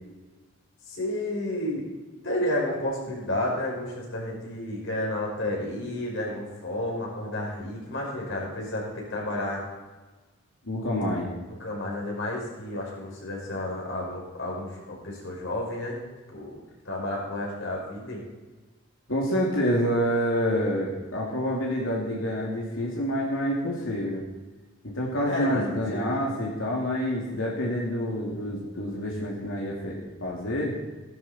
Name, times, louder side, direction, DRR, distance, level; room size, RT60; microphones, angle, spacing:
voice 1, 0.9-1.8 2.2-9.7 11.6-16.0 16.3-16.6 16.8-18.2 25.3-26.2, left 1 dB, 70° left, -2 dB, 5.5 m, -31 dB
voice 2, 10.6-11.3 19.1-24.2 24.8-30.8, equal, 90° left, -3 dB, 2.7 m, -27 dB
14.5 x 12.5 x 4.4 m, 1.2 s
head